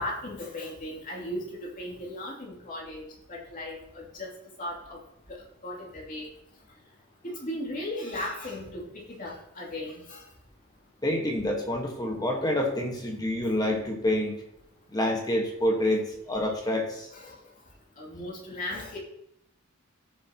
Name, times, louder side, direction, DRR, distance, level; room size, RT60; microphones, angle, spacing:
voice 1, 0.0-4.3 4.6-5.0 5.3-6.3 7.2-10.3 16.3-16.4 17.1-17.3 18.0-19.0, left 1 dB, 40° left, -4 dB, 2.8 m, -37 dB
voice 2, 11.0-14.4 14.9-17.1, left 1 dB, 20° left, 2 dB, 1.4 m, -27 dB
16.5 x 7.1 x 2.9 m, 0.77 s
head